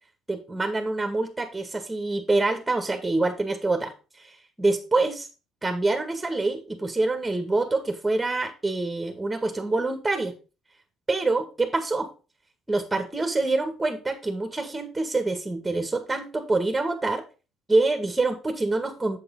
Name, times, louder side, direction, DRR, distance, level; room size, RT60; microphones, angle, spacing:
voice 1, 0.3-3.9 4.2-5.3 5.6-10.3 11.1-12.1 12.7-17.2 17.7-19.2, right 2 dB, 15° right, 7 dB, 1.9 m, -26 dB
7.8 x 7.2 x 3.8 m, 0.32 s
hypercardioid pair, 60°, 0 cm